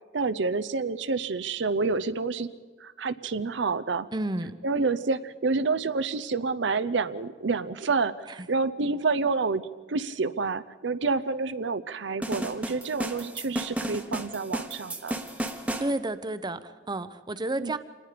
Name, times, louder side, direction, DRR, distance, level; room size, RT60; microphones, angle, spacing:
voice 1, 0.1-2.5 2.8-4.1 4.6-9.6 9.9-15.1 17.6-17.7, right 4 dB, 75° right, 13 dB, 0.7 m, -28 dB
voice 2, 4.1-4.6 8.3-8.5 15.8-17.8, right 2 dB, 25° right, 12 dB, 0.7 m, -31 dB
sound 1, 12.2-15.9, right 1 dB, 5° right, 1.2 m, -33 dB
26.5 x 19.5 x 5.1 m, 1.4 s
head